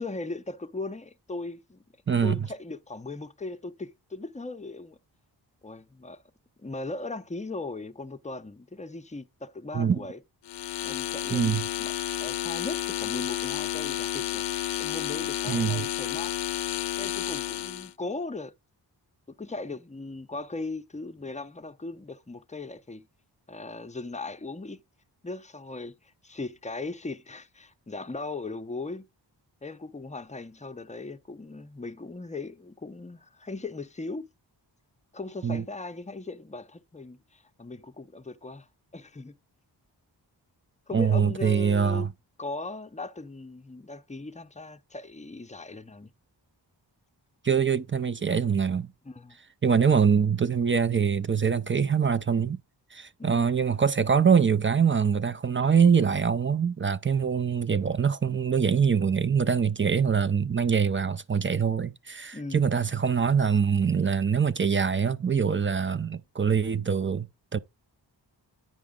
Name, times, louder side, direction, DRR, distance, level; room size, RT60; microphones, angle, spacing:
voice 1, 0.0-1.8 2.2-5.0 5.6-6.2 6.6-10.2 10.8-11.9 12.2-14.5 14.8-16.3 17.0-18.5 19.4-23.1 23.5-24.8 25.2-29.1 29.6-34.3 35.1-39.3 40.9-42.1 42.4-46.1 49.1-49.4 53.2-53.5 62.3-62.7, left 3 dB, 15° left, 0.6 m, -38 dB
voice 2, 2.1-2.5 9.7-10.0 11.3-11.6 15.5-15.9 35.4-35.6 40.9-42.1 47.4-48.9 49.6-52.6 52.9-67.6, right 6 dB, 30° right, 0.4 m, -24 dB
sound 1, 10.5-17.9, left 13 dB, 70° left, 0.5 m, -31 dB
9.5 x 4.9 x 3.6 m
cardioid pair, 50°, 44 cm